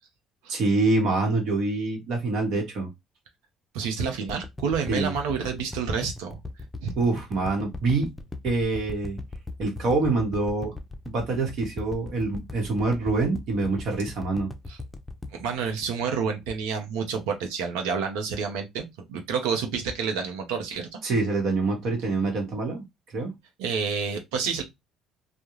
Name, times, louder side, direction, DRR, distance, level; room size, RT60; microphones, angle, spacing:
voice 1, 0.5-2.9 4.9-5.1 7.0-8.1 8.4-9.2 9.6-10.7 11.1-14.5 21.0-22.8 23.1-23.3, right 3 dB, 65° right, 1.0 m, -25 dB
voice 2, 3.7-6.4 6.8-6.9 14.7-14.8 15.3-21.0 23.6-24.6, right 6 dB, 80° right, 0.6 m, -29 dB
sound 1, 4.3-16.6 17.0-17.1, left 2 dB, 15° left, 0.5 m, -38 dB
2.3 x 2.1 x 3.0 m
hypercardioid pair, 60°, 0 cm